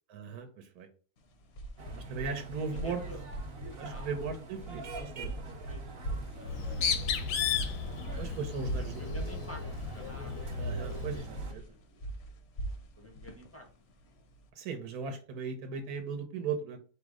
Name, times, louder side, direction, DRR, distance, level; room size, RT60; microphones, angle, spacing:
voice 1, 0.1-0.9 1.9-3.0 3.7-5.3 8.2-9.0 10.5-11.6 14.5-16.8, right 5 dB, 75° right, 5 dB, 1.2 m, -37 dB
sound 1, 1.2-14.5, right 1 dB, 60° left, 0.7 m, -41 dB
sound 2, 1.8-11.5, right 2 dB, 50° right, 0.9 m, -45 dB
voice 2, 2.7-3.2 3.8-4.1 5.4-6.5 8.8-9.6 9.9-10.6 10.9-11.1 11.5-11.8 13.0-13.7, equal, 25° left, 1 dB, 0.3 m, -49 dB
Bird, 6.4-11.3, left 6 dB, 80° left, 1.2 m, -34 dB
4.9 x 2.0 x 4.7 m, 0.38 s
omnidirectional pair, 1.7 m